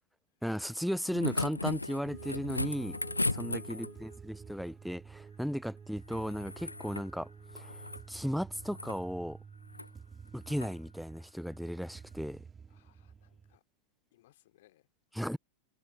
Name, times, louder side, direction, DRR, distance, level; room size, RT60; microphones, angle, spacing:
voice 1, 0.4-3.0 3.3-7.3 7.5-9.4 10.3-12.4 15.1-15.4, equal, ahead, 0.6 m, -36 dB
sound 1, 0.8-4.1 6.1-7.1 7.4-8.1 8.6-9.0 9.7-9.9 10.5-10.7 12.1-12.2, left 2 dB, 85° left, 0.5 m, -36 dB
sound 2, 2.0-13.6, right 6 dB, 20° right, 2.2 m, -51 dB
voice 2, 3.6-4.1 12.7-13.6 14.1-14.9, left 15 dB, 55° left, 3.1 m, -64 dB
figure-of-eight pair, 90°, 0 cm